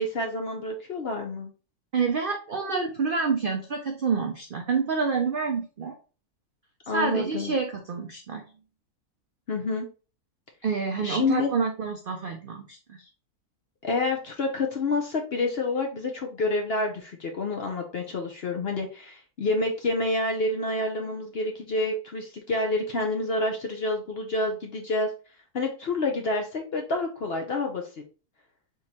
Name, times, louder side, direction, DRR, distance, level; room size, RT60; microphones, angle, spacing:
voice 1, 0.0-1.5 6.9-7.5 9.5-9.9 11.0-11.5 13.8-25.1 25.5-27.8, left 2 dB, 55° left, 3 dB, 0.7 m, -28 dB
voice 2, 1.9-5.9 6.9-8.4 10.6-12.8, right 5 dB, 70° right, 3 dB, 0.5 m, -27 dB
3.7 x 3.0 x 4.0 m, 0.35 s
omnidirectional pair, 1.6 m